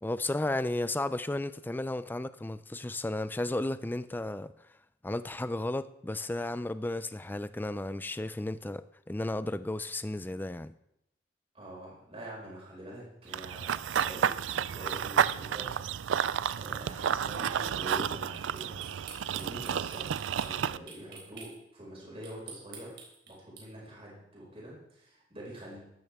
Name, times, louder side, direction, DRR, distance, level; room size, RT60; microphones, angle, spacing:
voice 1, 0.0-4.5 5.0-10.7, left 2 dB, 10° left, 13 dB, 0.4 m, -33 dB
voice 2, 11.5-15.8 16.5-23.0 23.3-25.8, right 1 dB, 30° right, -5 dB, 5.6 m, -45 dB
Run / Bird vocalization bird call bird song, 13.3-20.8, right 8 dB, 80° right, 0.4 m, -31 dB
sound 1, 18.3-21.5 22.2-23.6, right 5 dB, 60° right, 4.0 m, -46 dB
14.5 x 12.5 x 3.6 m, 0.81 s
head